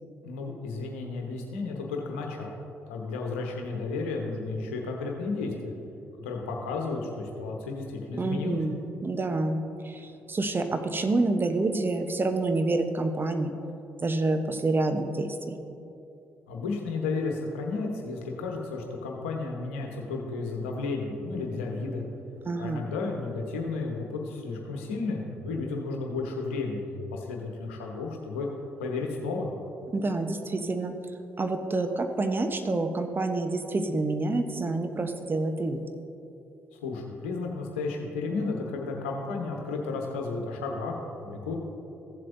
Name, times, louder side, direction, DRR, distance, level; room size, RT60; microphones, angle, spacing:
voice 1, 0.2-2.6 2.9-5.7 6.2-8.6 16.5-22.0 22.6-28.5 28.8-29.5 36.7-41.5, left 3 dB, 85° left, 1 dB, 1.0 m, -33 dB
voice 2, 8.2-13.5 14.0-15.6 22.4-22.9 29.9-31.0 31.4-35.8, right 2 dB, 35° right, 7 dB, 0.9 m, -28 dB
15.0 x 7.6 x 2.7 m, 2.8 s
hypercardioid pair, 45°, 6 cm